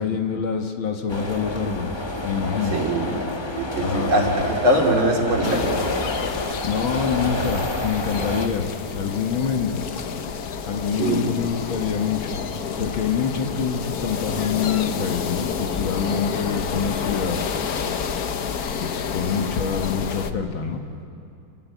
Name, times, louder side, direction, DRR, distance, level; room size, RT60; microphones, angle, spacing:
voice 1, 0.0-2.8 3.8-4.1 6.6-8.7 8.9-9.9 10.7-12.4 12.8-17.4 18.8-20.8, left 6 dB, 75° left, 3 dB, 2.3 m, -26 dB
sound 1, 1.1-8.5, left 2 dB, 15° left, 1.0 m, -29 dB
voice 2, 2.7-3.1 3.8-5.9 11.0-11.2, right 1 dB, 85° right, 0 dB, 4.0 m, -21 dB
sound 2, 5.4-20.3, left 6 dB, 55° left, 1.3 m, -29 dB
28.5 x 18.5 x 8.2 m, 2.5 s
omnidirectional pair, 2.2 m